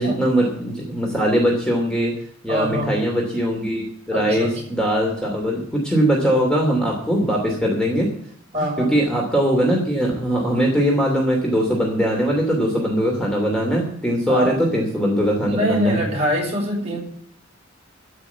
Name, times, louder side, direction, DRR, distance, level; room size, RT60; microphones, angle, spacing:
voice 1, 0.0-2.1 2.4-8.1 8.6-16.0, equal, 5° left, -1 dB, 2.7 m, -21 dB
voice 2, 2.5-2.9 4.1-4.7 8.5-9.0 14.3-14.7 15.4-17.0, equal, 30° right, -2 dB, 6.2 m, -24 dB
14.0 x 6.1 x 9.2 m, 0.62 s
head